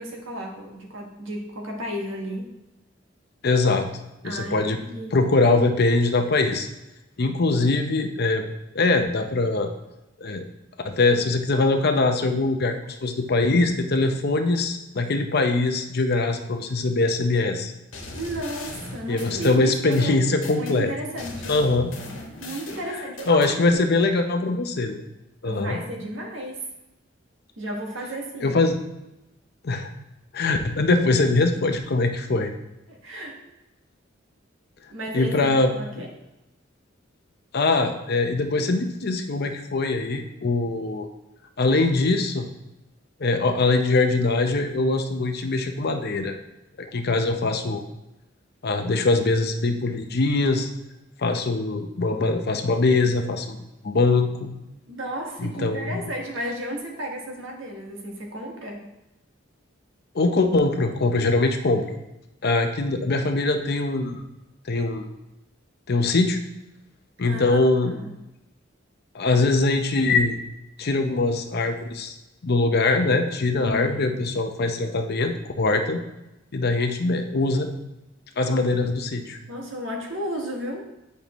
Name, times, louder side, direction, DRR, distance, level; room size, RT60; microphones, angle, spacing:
voice 1, 0.0-2.5 4.2-5.2 18.1-20.2 20.5-21.6 22.4-24.1 25.4-26.7 27.6-28.6 32.9-33.4 34.9-36.1 54.9-58.9 67.2-68.1 73.6-74.1 79.5-80.8, right 1 dB, 80° right, 1 dB, 1.3 m, -34 dB
voice 2, 3.4-3.9 4.2-4.8 5.1-6.7 7.2-8.5 8.7-9.7 10.2-10.5 10.8-17.7 19.1-20.9 21.5-21.9 23.3-25.0 25.4-25.8 28.4-28.8 29.6-29.9 30.3-32.5 35.1-36.0 37.5-41.1 41.6-42.5 43.2-46.3 46.9-47.8 48.6-50.7 51.2-53.6 53.8-54.5 55.4-56.0 60.1-62.0 62.4-64.2 64.7-65.0 65.9-66.4 67.2-68.0 69.1-70.4 70.8-72.1 72.4-76.0 76.5-77.7 78.4-79.4, left 3 dB, 55° left, 6 dB, 0.7 m, -22 dB
sound 1, 17.9-20.8 21.2-23.5, left 2 dB, 90° left, 1.3 m, -38 dB
8.4 x 5.3 x 3.0 m, 0.94 s
head